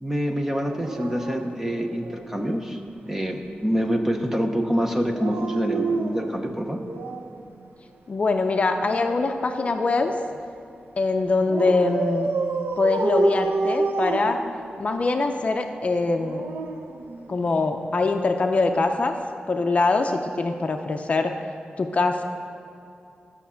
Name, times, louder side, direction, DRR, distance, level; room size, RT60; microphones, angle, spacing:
voice 1, 0.0-2.8 3.1-6.8, equal, 10° right, 4 dB, 0.7 m, -26 dB
Dog, 0.7-2.5 5.0-7.4 8.7-10.3 11.5-15.0 16.0-17.7 18.9-19.1, right 3 dB, 90° right, 0.8 m, -29 dB
voice 2, 8.1-10.1 11.0-12.3 12.8-14.4 14.8-16.4 17.3-19.1 19.5-21.3 21.8-22.2, left 3 dB, 40° left, 5 dB, 0.5 m, -23 dB
12.0 x 7.2 x 5.7 m, 2.6 s
wide cardioid pair, 160°, 3 cm